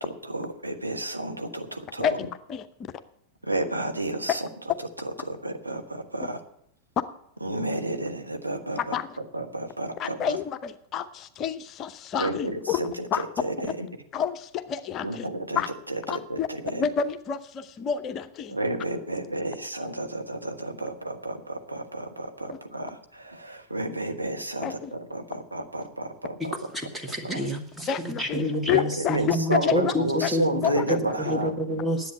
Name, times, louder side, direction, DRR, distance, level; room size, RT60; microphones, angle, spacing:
voice 1, 0.0-2.2 3.4-4.5 5.0-6.4 7.4-8.9 9.3-10.2 12.2-13.9 15.0-16.8 18.5-26.5 27.2-27.5 28.7-31.5, right 1 dB, 85° right, 4 dB, 1.1 m, -31 dB
voice 2, 2.0-2.7 4.3-4.4 6.2-6.3 8.8-9.1 10.0-12.8 13.1-13.2 14.1-15.3 15.6-15.7 16.1-16.5 16.7-18.6 22.5-22.6 24.6-24.9 27.9-29.9 30.2-31.0 31.2-31.4, left 8 dB, 30° left, 10 dB, 0.7 m, -29 dB
voice 3, 26.7-30.6 30.9-32.1, equal, 5° right, 4 dB, 1.8 m, -28 dB
10.5 x 8.2 x 8.5 m, 0.73 s
figure-of-eight pair, 90°, 0 cm